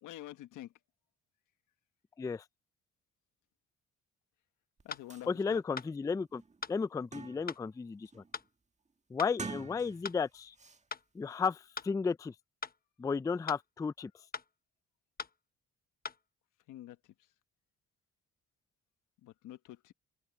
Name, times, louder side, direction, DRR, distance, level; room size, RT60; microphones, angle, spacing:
voice 1, 0.0-0.7 4.8-5.6 16.7-17.0 19.2-19.9, left 14 dB, 85° left, 1.4 m, -47 dB
sound 1, 4.8-4.9 5.1-5.3 5.8-5.9 6.3-7.7 8.1-8.4 9.2-10.2 10.6-10.8, right 4 dB, 25° right, 1.7 m, -46 dB
sound 2, 4.9-5.1 5.8-5.9 6.6-6.8 7.5-7.6 8.3-8.5 9.2-9.4 10.0-10.2 10.9-11.1 11.8-11.9 12.6-12.8 13.5-13.6 14.3-14.5 15.2-15.4 16.0-16.2, left 5 dB, 30° left, 1.0 m, -41 dB
voice 2, 5.3-6.4 6.7-8.2 9.1-10.5 11.1-12.3 13.0-14.1, left 5 dB, 10° left, 0.3 m, -33 dB
cardioid pair, 90°, 30 cm